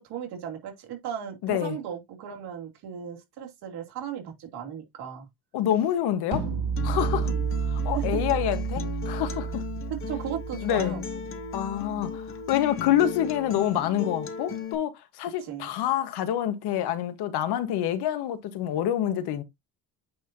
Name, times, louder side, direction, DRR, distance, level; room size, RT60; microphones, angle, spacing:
voice 1, 0.1-5.3 7.2-7.5 7.8-8.2 9.9-11.0 11.9-12.1 15.4-15.7, right 9 dB, 75° right, 2.8 m, -36 dB
voice 2, 1.4-1.8 5.5-6.5 6.8-7.3 7.7-9.6 10.6-11.0 11.5-19.4, left 11 dB, 75° left, 1.3 m, -27 dB
sound 1, 6.3-12.3, right 6 dB, 55° right, 2.8 m, -31 dB
Acoustic guitar, 6.8-14.7, left 7 dB, 30° left, 0.8 m, -36 dB
9.2 x 4.3 x 2.7 m
cardioid pair, 175°, 40 cm